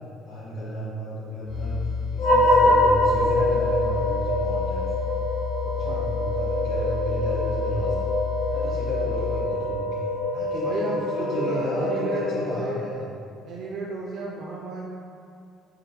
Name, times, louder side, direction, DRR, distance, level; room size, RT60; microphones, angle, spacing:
voice 1, 0.2-1.8 2.1-5.1 5.7-8.1 8.5-9.9 10.3-13.1, left 1 dB, 65° left, -10 dB, 1.0 m, -33 dB
sound 1, 1.5-9.4, left 7 dB, 50° left, 0.6 m, -31 dB
sound 2, 2.2-12.7, left 1 dB, 85° left, 1.1 m, -25 dB
voice 2, 5.6-6.1 10.6-12.9 13.4-14.8, right 3 dB, 50° right, -4 dB, 0.4 m, -33 dB
5.0 x 2.6 x 2.8 m, 2.4 s
cardioid pair, 160°, 0 cm